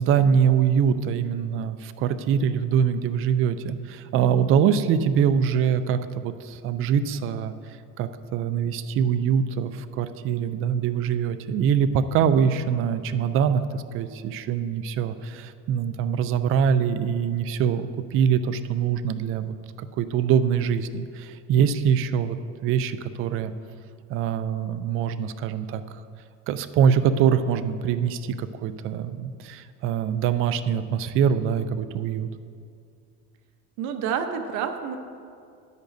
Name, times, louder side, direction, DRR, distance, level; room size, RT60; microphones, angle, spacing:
voice 1, 0.0-7.5 8.0-22.4 22.6-23.5 24.1-25.8 26.5-32.3, right 7 dB, 40° right, 11 dB, 0.4 m, -24 dB
voice 2, 33.8-35.0, right 7 dB, 65° right, 6 dB, 0.9 m, -28 dB
13.5 x 10.0 x 2.7 m, 2.3 s
cardioid pair, 150°, 32 cm